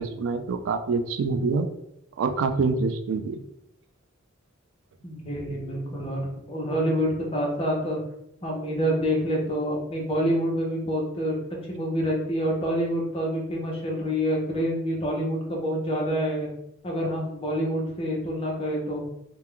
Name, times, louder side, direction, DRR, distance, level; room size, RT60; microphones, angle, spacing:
voice 1, 0.0-1.7 2.2-3.5, right 4 dB, 70° right, 8 dB, 0.3 m, -26 dB
voice 2, 5.0-8.0 8.4-11.4 11.7-16.5 16.8-19.0, equal, 30° left, -2 dB, 0.7 m, -27 dB
2.2 x 2.1 x 3.7 m, 0.78 s
head